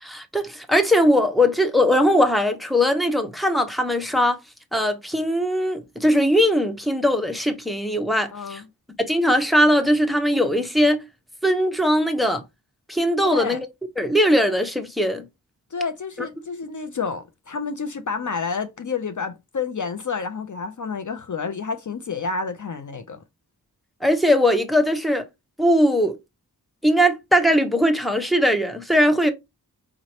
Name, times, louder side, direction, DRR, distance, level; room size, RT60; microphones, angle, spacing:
voice 1, 0.0-4.4 4.7-8.6 9.1-11.1 11.4-12.4 12.9-13.7 14.0-15.3 16.2-16.3 24.0-25.3 25.6-26.2 26.8-29.3, equal, ahead, 0.9 m, -20 dB
voice 2, 8.3-8.7 13.2-13.6 15.7-23.2, left 5 dB, 55° left, 0.6 m, -29 dB
5.0 x 3.1 x 2.8 m
wide cardioid pair, 75°, 37 cm